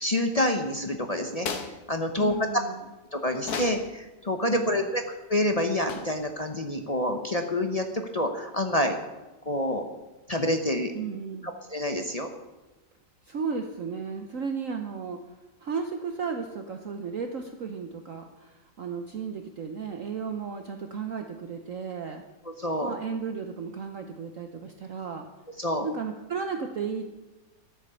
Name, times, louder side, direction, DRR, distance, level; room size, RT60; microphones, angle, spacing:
voice 1, 0.0-1.5 1.9-2.3 3.1-9.0 9.5-9.8 10.3-10.9 11.7-12.3 22.6-22.9 25.6-25.9, left 1 dB, 30° left, 4 dB, 0.7 m, -27 dB
sound 1, 1.3-1.8 3.4-3.9 5.9-6.2, left 5 dB, 60° left, 1.6 m, -34 dB
voice 2, 2.2-2.8 4.5-4.8 10.9-11.5 13.2-15.2 15.6-22.2 22.8-25.3 25.8-27.1, right 5 dB, 55° right, 5 dB, 1.1 m, -34 dB
13.0 x 8.5 x 7.0 m, 1.1 s
omnidirectional pair, 2.0 m